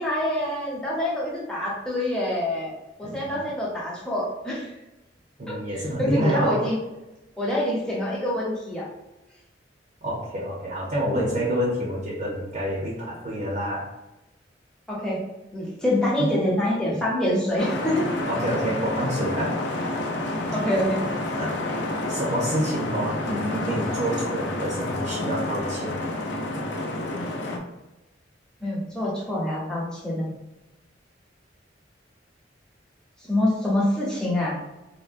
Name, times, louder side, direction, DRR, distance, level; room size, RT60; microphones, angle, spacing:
voice 1, 0.0-2.7 3.0-4.7 5.5-6.8 7.4-8.8 14.9-15.2 15.5-18.0 20.5-21.0 28.6-30.3 33.3-34.8, left 1 dB, 5° left, -6 dB, 0.8 m, -26 dB
voice 2, 3.0-3.4 5.4-6.7 10.0-13.9 16.2-16.4 18.3-19.7 21.4-21.6 22.1-26.0, equal, 40° right, -4 dB, 0.6 m, -28 dB
sound 1, 17.6-27.6, left 2 dB, 70° left, 0.5 m, -29 dB
3.6 x 2.1 x 2.4 m, 1.0 s
head